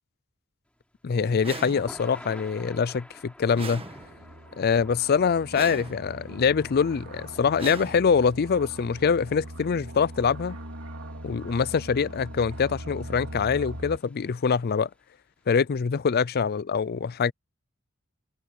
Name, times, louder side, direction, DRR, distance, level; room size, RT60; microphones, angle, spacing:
Thunder / Rain, 0.7-15.0, left 1 dB, 5° left, 4.5 m, -52 dB
voice 1, 1.0-3.8 4.6-10.6 11.2-14.9 15.5-17.3, left 6 dB, 45° left, 0.4 m, -24 dB
sound 1, 1.4-2.3 3.5-4.5 5.5-6.3 7.5-8.5, right 3 dB, 25° right, 1.5 m, -40 dB
sound 2, 4.0-14.0, right 1 dB, 65° right, 2.8 m, -41 dB
head